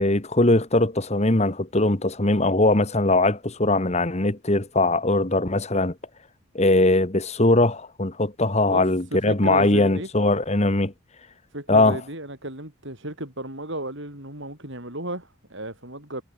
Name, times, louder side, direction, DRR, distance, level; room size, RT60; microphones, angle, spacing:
voice 1, 0.0-5.9 6.5-10.9 11.7-12.0, left 2 dB, 30° left, 1.5 m, -21 dB
voice 2, 8.7-10.1 11.5-16.2, right 1 dB, 55° right, 7.9 m, -34 dB
head